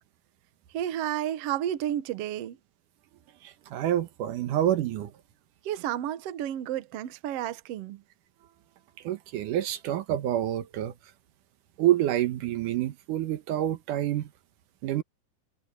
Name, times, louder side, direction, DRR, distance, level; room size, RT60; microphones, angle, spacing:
voice 1, 0.7-2.6 5.6-8.0, right 11 dB, 65° right, 1.7 m, -31 dB
voice 2, 3.7-5.1 9.0-10.9 11.8-14.3 14.8-15.0, right 12 dB, 80° right, 2.6 m, -27 dB
omnidirectional pair, 3.7 m